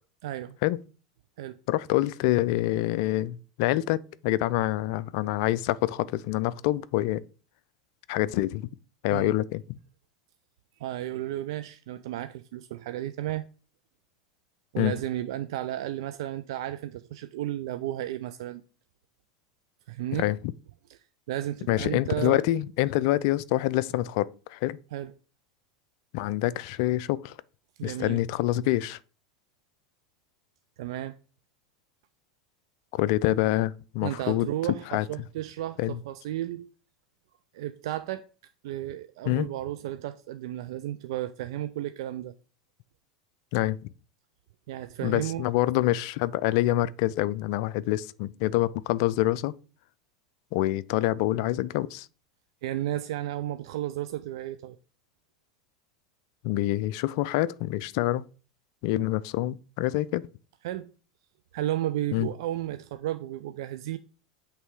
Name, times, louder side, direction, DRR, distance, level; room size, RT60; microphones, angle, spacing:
voice 1, 0.2-0.6 1.4-1.6 9.1-9.3 10.8-13.5 14.7-18.6 19.9-20.3 20.9-21.0 21.3-22.4 24.9-25.1 27.8-28.2 30.8-31.1 34.0-36.7 37.5-38.2 38.6-42.3 44.7-45.5 52.6-54.8 60.6-60.9 61.5-64.0, right 13 dB, 60° right, 0.4 m, -33 dB
voice 2, 1.7-7.2 8.1-8.7 9.0-9.8 14.8-15.0 20.1-20.4 21.7-24.8 26.1-27.4 27.8-29.0 32.9-34.5 34.9-35.1 35.8-36.0 39.3-39.5 43.5-43.8 45.0-49.5 50.5-52.1 56.4-58.2 58.8-60.2 62.1-62.3, left 15 dB, 55° left, 0.4 m, -26 dB
8.1 x 3.4 x 4.7 m
figure-of-eight pair, 85°, 3 cm